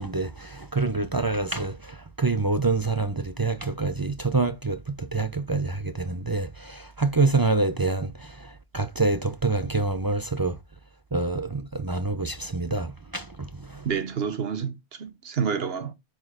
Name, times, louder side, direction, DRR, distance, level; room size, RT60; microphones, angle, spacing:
voice 1, 0.0-1.7 2.2-4.8 5.1-8.1 8.7-10.6 11.1-13.2, right 3 dB, 30° right, 0.4 m, -26 dB
voice 2, 13.8-15.9, right 6 dB, 60° right, 1.2 m, -29 dB
9.0 x 4.1 x 5.0 m
omnidirectional pair, 1.2 m